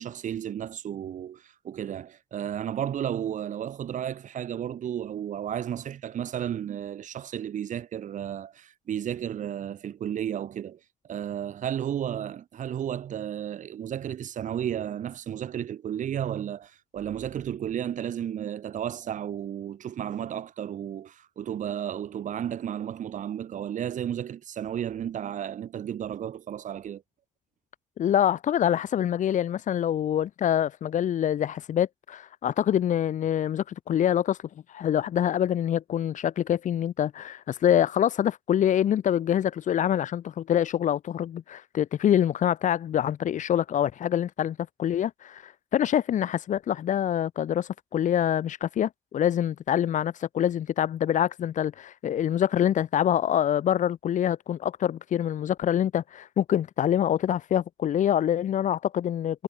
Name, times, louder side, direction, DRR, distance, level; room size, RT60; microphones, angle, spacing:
voice 1, 0.0-10.8 11.0-27.0, right 10 dB, 85° right, 3.8 m, -33 dB
voice 2, 28.0-34.4 34.7-59.4, left 10 dB, 85° left, 1.3 m, -25 dB
cardioid pair, 95°, 13 cm